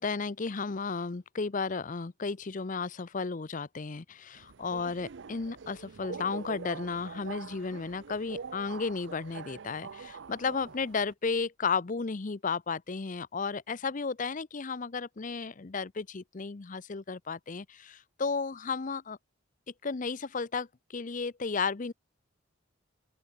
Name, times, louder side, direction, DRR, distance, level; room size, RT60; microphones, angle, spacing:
voice 1, 0.0-19.2 19.8-21.9, left 4 dB, 40° left, 0.6 m, -33 dB
Subway metro underground, 4.3-11.1, right 5 dB, 60° right, 0.5 m, -44 dB
open air
head